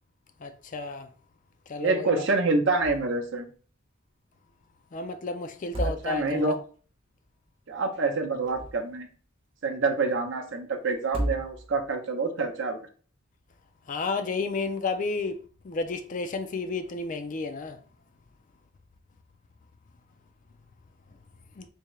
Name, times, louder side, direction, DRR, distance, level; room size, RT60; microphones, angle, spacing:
voice 1, 0.4-1.1 1.7-2.2 4.9-6.5 13.9-17.8 21.6-21.7, left 3 dB, 40° left, 0.3 m, -32 dB
voice 2, 1.8-3.5 5.8-6.6 7.7-9.1 9.6-12.8, right 3 dB, 60° right, 0.7 m, -27 dB
sound 1, 2.7-3.3 3.5-3.6 5.5-6.5 8.2-9.1 11.0-11.9, right 1 dB, 25° right, 0.7 m, -34 dB
3.5 x 2.7 x 3.1 m
head